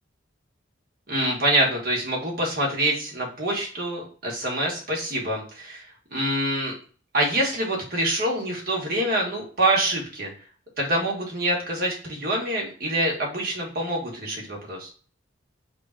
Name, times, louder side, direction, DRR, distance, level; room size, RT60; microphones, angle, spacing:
voice 1, 1.1-5.8 6.1-6.7 7.1-10.3 10.8-14.9, right 1 dB, 50° right, -2 dB, 1.4 m, -25 dB
3.5 x 2.4 x 4.3 m, 0.40 s
head